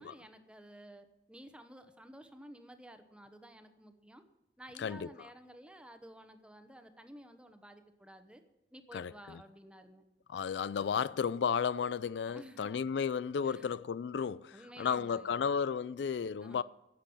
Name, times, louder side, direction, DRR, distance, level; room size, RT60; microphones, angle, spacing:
voice 1, 0.0-4.2 4.6-8.4 8.7-10.0 10.7-11.0 12.3-13.0 13.4-13.7 14.5-15.5 16.4-16.6, right 1 dB, 5° right, 1.0 m, -53 dB
voice 2, 4.8-5.1 8.9-9.4 10.3-16.6, left 6 dB, 80° left, 0.4 m, -33 dB
11.5 x 7.6 x 8.6 m
head